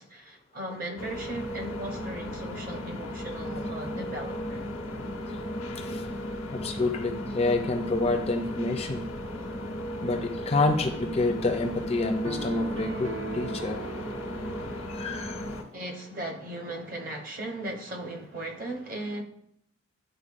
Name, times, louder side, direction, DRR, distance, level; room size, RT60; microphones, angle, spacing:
voice 1, 0.0-4.7 15.7-19.2, right 1 dB, 40° right, 0.9 m, -37 dB
sound 1, 1.0-15.6, left 1 dB, 90° left, 1.0 m, -36 dB
voice 2, 6.5-9.1 10.0-13.8 14.9-15.4, left 2 dB, 30° left, 0.4 m, -28 dB
sound 2, 12.2-15.5, right 4 dB, 65° right, 0.6 m, -39 dB
9.9 x 4.0 x 2.5 m
head